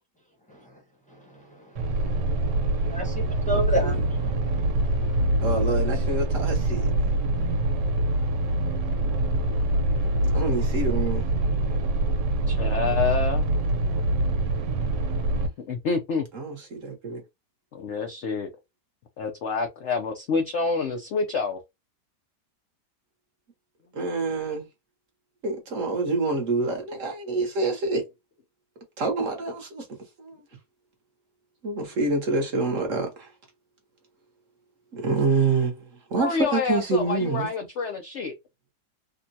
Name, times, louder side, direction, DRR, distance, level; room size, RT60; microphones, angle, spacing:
voice 1, 0.5-0.8 1.1-5.2, right 1 dB, 5° left, 0.7 m, -33 dB
sound 1, 1.8-15.5, right 1 dB, 90° right, 1.4 m, -24 dB
voice 2, 5.4-6.9 10.3-11.3 16.3-17.2 23.9-24.6 25.4-28.0 29.0-29.9 30.2-30.4 31.6-33.3 34.9-37.5, right 3 dB, 55° right, 1.1 m, -27 dB
voice 3, 12.5-13.5 15.6-16.2 17.7-18.5 19.2-21.6 36.2-38.4, left 4 dB, 75° left, 0.6 m, -27 dB
3.7 x 2.1 x 2.6 m
omnidirectional pair, 1.8 m